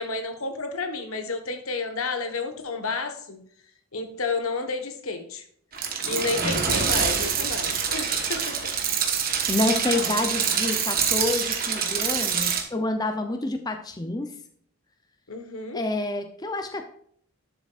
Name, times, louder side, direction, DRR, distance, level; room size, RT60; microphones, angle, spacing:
voice 1, 0.0-3.4 3.9-5.4 6.0-8.5 15.3-15.8, left 3 dB, 80° left, 6 dB, 1.3 m, -31 dB
sound 1, 5.7-12.6, right 7 dB, 40° right, 1.2 m, -25 dB
voice 2, 9.5-14.3 15.7-16.8, left 2 dB, 20° left, 6 dB, 0.6 m, -28 dB
11.5 x 7.0 x 2.5 m, 0.62 s
head